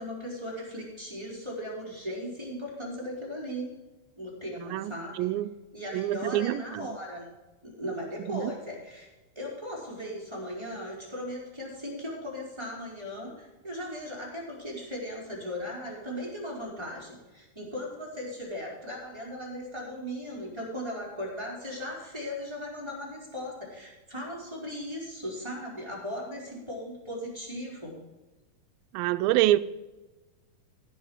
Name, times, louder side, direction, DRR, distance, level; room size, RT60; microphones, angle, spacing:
voice 1, 0.0-3.7 4.2-5.3 5.7-7.3 7.6-9.1 9.4-27.9, equal, 5° right, 3.9 m, -37 dB
voice 2, 4.6-5.5 5.9-7.0 8.3-8.5 28.9-29.6, right 15 dB, 85° right, 2.3 m, -27 dB
15.5 x 5.8 x 6.3 m
omnidirectional pair, 4.2 m